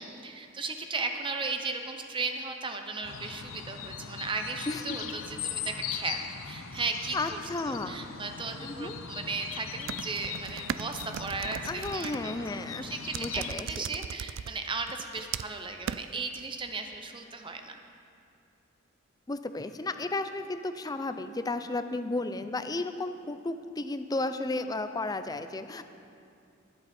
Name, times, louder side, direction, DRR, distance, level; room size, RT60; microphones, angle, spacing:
voice 1, 0.0-12.4 12.8-17.8, right 4 dB, 25° right, 5 dB, 0.7 m, -36 dB
sound 1, 3.0-13.6, left 7 dB, 80° left, 0.6 m, -40 dB
voice 2, 4.7-5.1 7.1-8.1 8.6-8.9 11.6-13.7 19.3-25.8, left 2 dB, 20° left, 9 dB, 0.5 m, -33 dB
sound 2, 9.8-12.2 13.1-14.5 14.9-15.6 15.9-16.0, right 8 dB, 65° right, 0.3 m, -37 dB
20.0 x 8.0 x 4.3 m, 2.5 s
head